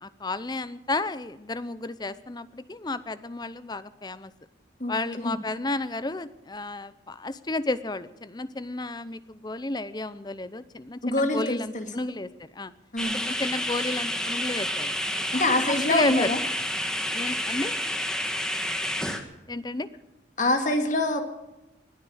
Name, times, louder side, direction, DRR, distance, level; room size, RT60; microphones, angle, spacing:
voice 1, 0.0-4.3 4.9-12.7 13.1-14.9 15.3-16.3 17.1-17.7 19.5-19.9, left 2 dB, 20° left, 14 dB, 0.7 m, -32 dB
voice 2, 4.8-5.4 11.0-11.9 12.9-13.2 15.3-16.4 20.4-21.2, left 2 dB, 45° left, 6 dB, 2.1 m, -25 dB
sound 1, 13.0-19.2, equal, 5° left, 1.5 m, -29 dB
20.5 x 10.5 x 6.4 m, 1.0 s
head